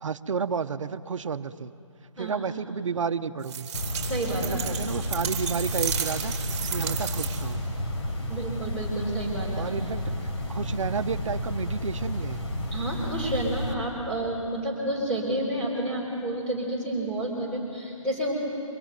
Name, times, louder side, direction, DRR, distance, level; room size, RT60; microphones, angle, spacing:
voice 1, 0.0-1.7 2.2-3.7 4.4-6.4 6.7-7.7 9.5-12.4, right 5 dB, 65° right, 10 dB, 0.9 m, -31 dB
sound 1, 3.4-7.6, right 8 dB, 30° right, 2.8 m, -33 dB
sound 2, 3.7-13.7, left 1 dB, 55° left, 4.2 m, -31 dB
voice 2, 4.0-4.5 8.3-9.6 12.7-18.3, right 1 dB, 5° left, -5 dB, 4.1 m, -30 dB
25.5 x 22.5 x 9.3 m, 2.6 s
hypercardioid pair, 160°, 17 cm